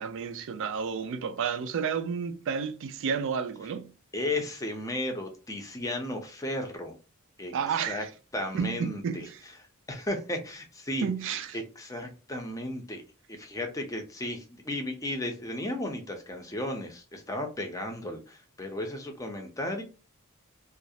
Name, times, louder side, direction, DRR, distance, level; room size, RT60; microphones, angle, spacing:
voice 1, 0.0-3.9 7.5-8.1 8.5-9.4 11.0-11.6, right 6 dB, 60° right, 0.3 m, -31 dB
voice 2, 4.1-7.0 7.4-8.0 8.3-9.3 9.6-11.1 11.5-13.0 13.3-19.8, left 1 dB, 15° left, 0.5 m, -34 dB
2.3 x 2.0 x 2.6 m
head